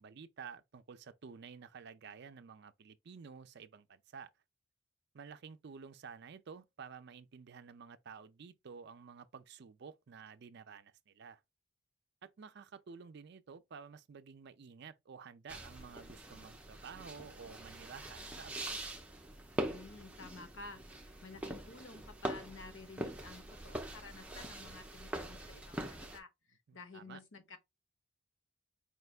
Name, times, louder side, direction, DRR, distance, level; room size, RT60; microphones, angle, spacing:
voice 1, 0.0-4.3 5.1-11.4 12.2-18.8 26.7-27.2, right 6 dB, 50° right, 0.4 m, -52 dB
sound 1, 15.5-26.2, right 1 dB, 5° right, 0.6 m, -43 dB
voice 2, 19.7-27.6, left 3 dB, 60° left, 1.0 m, -52 dB
4.9 x 3.3 x 2.3 m
head